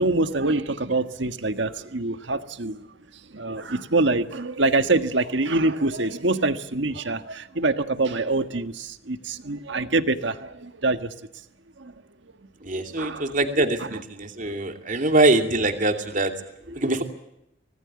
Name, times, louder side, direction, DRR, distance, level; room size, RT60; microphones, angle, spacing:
voice 1, 0.0-2.8 3.3-11.1 11.8-11.9 13.0-13.3, right 2 dB, 65° right, 1.5 m, -25 dB
voice 2, 12.6-16.3 16.7-17.0, right 2 dB, 40° right, 2.7 m, -23 dB
25.5 x 19.0 x 8.7 m
head